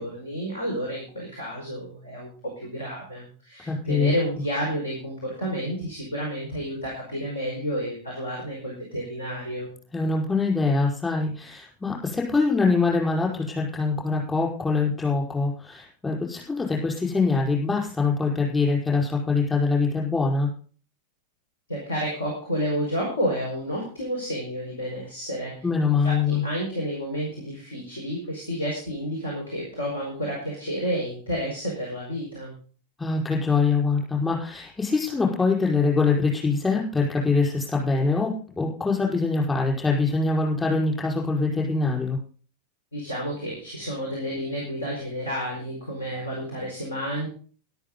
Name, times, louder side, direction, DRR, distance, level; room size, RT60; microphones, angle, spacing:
voice 1, 0.0-9.7 21.7-25.6 26.0-32.5 42.9-47.3, equal, 70° left, -1 dB, 5.0 m, -30 dB
voice 2, 3.7-4.1 9.9-20.5 25.6-26.4 33.0-42.2, left 4 dB, 15° left, -2 dB, 5.3 m, -24 dB
13.0 x 12.0 x 4.0 m, 0.40 s
figure-of-eight pair, 90°, 0 cm